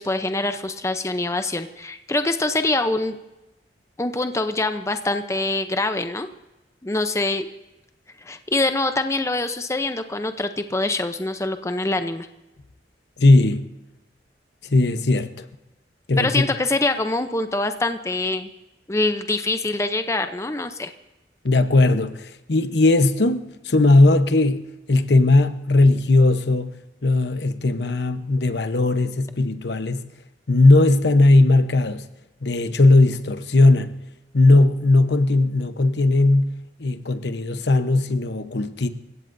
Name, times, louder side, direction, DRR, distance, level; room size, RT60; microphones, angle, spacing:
voice 1, 0.0-3.2 4.0-6.3 6.8-7.5 8.2-12.3 16.2-18.5 18.9-20.9, left 2 dB, 15° left, 0.6 m, -24 dB
voice 2, 13.2-13.6 14.6-15.5 16.1-16.5 21.4-26.7 27.0-30.0 30.5-32.1 32.4-34.0 34.3-38.9, left 2 dB, 70° left, 0.9 m, -18 dB
27.5 x 16.0 x 2.6 m
head